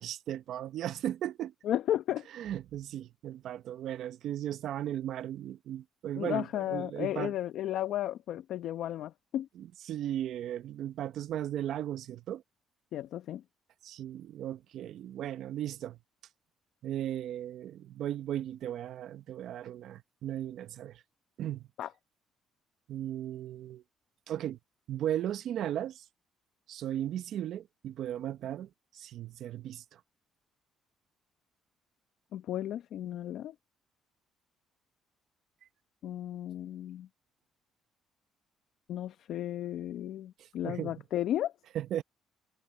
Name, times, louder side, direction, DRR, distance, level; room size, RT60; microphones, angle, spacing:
voice 1, 0.0-1.5 2.3-7.3 9.6-12.4 13.8-16.0 16.8-21.0 21.4-21.7 22.9-23.8 24.3-24.6 24.9-26.0 26.7-30.0 40.4-40.9 41.7-42.0, right 11 dB, 70° right, 1.0 m, -36 dB
voice 2, 1.6-2.3 6.2-9.5 12.9-13.4 21.8-21.9 32.3-33.5 36.0-37.1 38.9-41.5, left 12 dB, 75° left, 1.2 m, -34 dB
cardioid pair, 80°, 0 cm